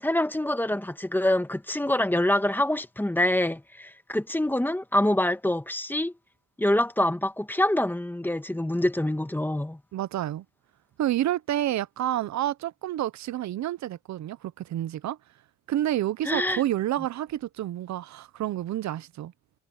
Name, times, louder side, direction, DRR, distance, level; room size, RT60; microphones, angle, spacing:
voice 1, 0.0-6.1 6.6-9.8 16.2-16.6, left 1 dB, 5° left, 1.5 m, -25 dB
voice 2, 9.9-10.4 11.0-15.2 15.7-19.3, right 13 dB, 65° right, 0.8 m, -29 dB
cardioid pair, 90°, 30 cm